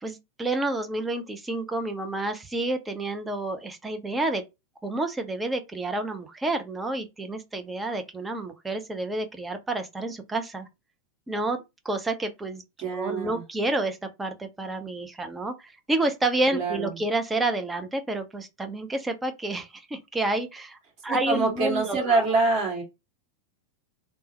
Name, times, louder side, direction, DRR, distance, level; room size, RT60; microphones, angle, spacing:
voice 1, 0.0-4.4 4.8-10.7 11.3-12.6 12.9-20.8 21.0-22.2, right 2 dB, 10° right, 0.6 m, -29 dB
voice 2, 12.8-13.4 16.5-17.0 21.1-22.8, right 3 dB, 40° right, 1.9 m, -25 dB
3.3 x 2.1 x 2.9 m
figure-of-eight pair, 90°, 0 cm